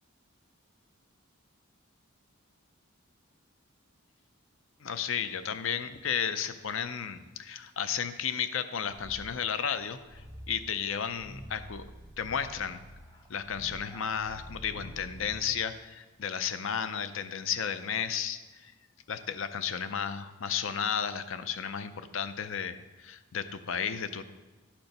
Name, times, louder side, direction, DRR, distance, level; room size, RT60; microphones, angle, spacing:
voice 1, 4.8-10.2 10.5-11.8 12.2-12.8 13.3-18.7 19.1-24.2, left 7 dB, 65° left, 11 dB, 0.5 m, -33 dB
sound 1, 8.9-15.8, equal, 15° left, 1.0 m, -48 dB
11.5 x 4.4 x 5.2 m, 1.2 s
head